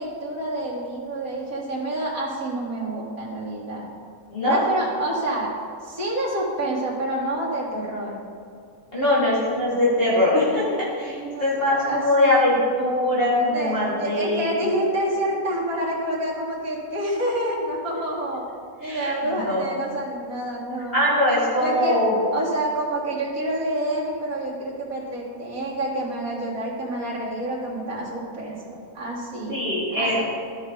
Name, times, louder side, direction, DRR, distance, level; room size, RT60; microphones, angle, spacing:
voice 1, 0.0-3.9 4.5-5.5 5.8-8.2 9.2-9.3 11.1-12.5 13.5-18.5 18.8-21.1 21.6-22.0 22.3-29.6 29.9-30.2, right 1 dB, 80° right, -6 dB, 2.5 m, -28 dB
voice 2, 4.3-4.6 8.9-10.6 11.0-14.5 18.8-19.7 20.9-22.2 29.5-30.2, left 1 dB, 40° left, -10 dB, 2.7 m, -22 dB
13.5 x 6.0 x 3.9 m, 2.4 s
omnidirectional pair, 1.5 m